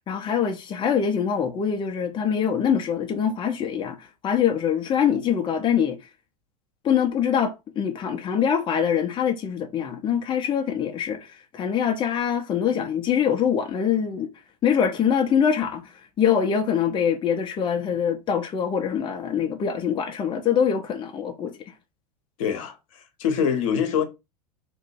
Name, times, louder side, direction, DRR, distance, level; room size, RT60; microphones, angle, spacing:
voice 1, 0.1-6.1 6.8-14.3 14.6-21.7, left 8 dB, 25° left, 0.7 m, -24 dB
voice 2, 22.4-24.0, left 7 dB, 55° left, 0.9 m, -25 dB
3.0 x 2.6 x 4.4 m
figure-of-eight pair, 85°, 20 cm